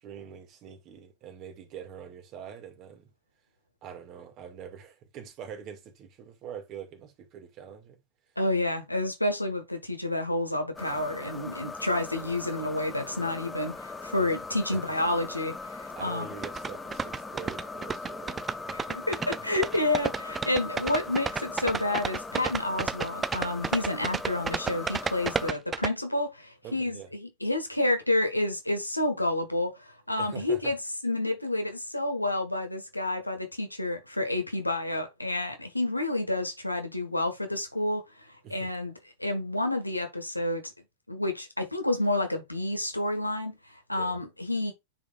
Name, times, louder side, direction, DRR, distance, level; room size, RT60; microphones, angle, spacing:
voice 1, 0.0-3.1 3.8-8.0 14.1-14.3 14.7-14.8 15.3-15.4 15.9-18.8 19.4-19.5 26.6-27.1 30.2-30.7 38.4-38.7 43.9-44.2, right 8 dB, 35° right, 2.1 m, -44 dB
voice 2, 8.4-16.2 18.7-30.8 31.0-38.0 38.5-38.9 39.2-40.7 41.1-43.6 43.9-44.7, left 2 dB, 85° left, 1.6 m, -29 dB
airplane-interior soft, 10.7-25.5, left 3 dB, 10° left, 1.2 m, -40 dB
sound 1, 16.4-25.9, right 5 dB, 15° right, 0.4 m, -31 dB
9.6 x 5.2 x 2.5 m
figure-of-eight pair, 90°, 0 cm